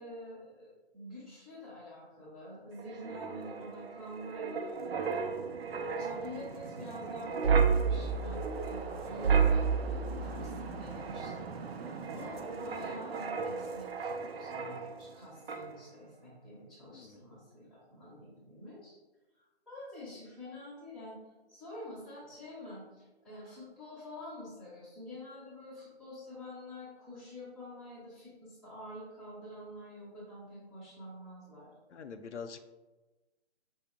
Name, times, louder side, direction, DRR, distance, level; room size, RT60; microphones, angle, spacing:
voice 1, 0.0-5.5 5.7-11.5 11.8-19.0 19.7-21.2 21.5-31.7, equal, ahead, -13 dB, 0.6 m, -47 dB
Wind, 2.8-15.2 15.5-15.7, right 6 dB, 60° right, 0.5 m, -33 dB
voice 2, 12.0-12.3 16.9-17.2 31.9-32.7, left 5 dB, 85° left, 8 dB, 0.5 m, -45 dB
5.3 x 2.0 x 3.4 m, 1.1 s
figure-of-eight pair, 145°, 34 cm